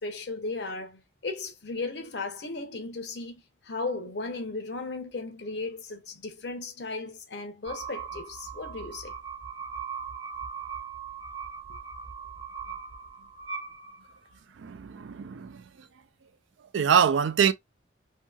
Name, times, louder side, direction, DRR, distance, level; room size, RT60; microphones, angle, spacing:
voice 1, 0.0-3.3 3.6-9.2, left 3 dB, 60° left, 0.8 m, -36 dB
sound 1, 7.6-14.4, right 6 dB, 30° right, 0.8 m, -39 dB
voice 2, 14.6-15.6 16.7-17.5, right 7 dB, 75° right, 0.4 m, -24 dB
2.8 x 2.7 x 2.3 m
head